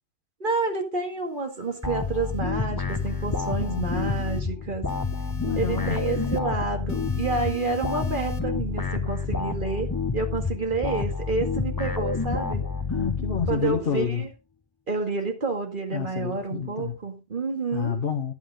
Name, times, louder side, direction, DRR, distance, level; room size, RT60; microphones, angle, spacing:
voice 1, 0.4-4.9 5.6-12.6 13.5-14.3 14.9-17.9, right 3 dB, 45° right, 2.3 m, -29 dB
sound 1, 1.3-2.4 2.9-4.4 4.9-6.4 6.9-8.4, left 1 dB, 75° left, 1.7 m, -41 dB
sound 2, 1.8-14.0, left 4 dB, 20° left, 1.1 m, -29 dB
voice 2, 3.7-4.0 5.4-6.0 12.9-14.2 15.9-17.0 17.7-18.3, left 6 dB, 50° left, 1.3 m, -29 dB
11.0 x 9.2 x 3.7 m
omnidirectional pair, 1.2 m